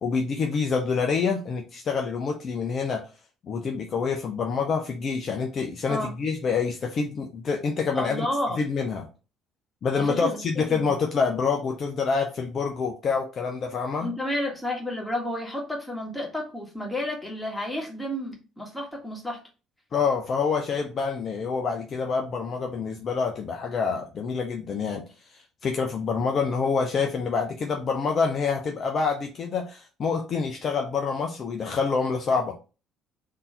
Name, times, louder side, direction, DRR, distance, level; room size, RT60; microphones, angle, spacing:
voice 1, 0.0-3.0 3.4-8.3 8.6-9.1 9.8-14.1 19.9-25.0 25.6-32.5, left 5 dB, 45° left, 2 dB, 0.6 m, -27 dB
voice 2, 7.9-8.7 9.9-11.0 14.0-19.4, left 1 dB, 5° left, -1 dB, 1.6 m, -31 dB
3.7 x 2.8 x 3.8 m, 0.33 s
figure-of-eight pair, 55°, 0 cm